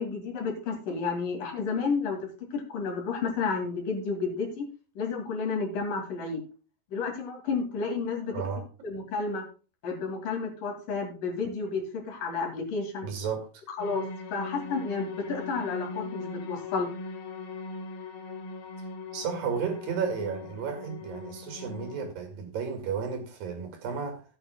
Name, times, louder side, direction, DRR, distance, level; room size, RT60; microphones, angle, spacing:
voice 1, 0.0-2.2 2.5-4.7 5.0-6.4 6.9-8.3 8.8-9.4 9.8-13.1 13.8-14.0 14.3-16.9, left 4 dB, 65° left, 3.9 m, -31 dB
voice 2, 8.3-8.6 13.0-13.5 19.1-24.2, right 6 dB, 75° right, 3.6 m, -33 dB
sound 1, 13.8-22.1, left 3 dB, 80° left, 3.6 m, -40 dB
16.5 x 9.1 x 2.2 m
omnidirectional pair, 4.1 m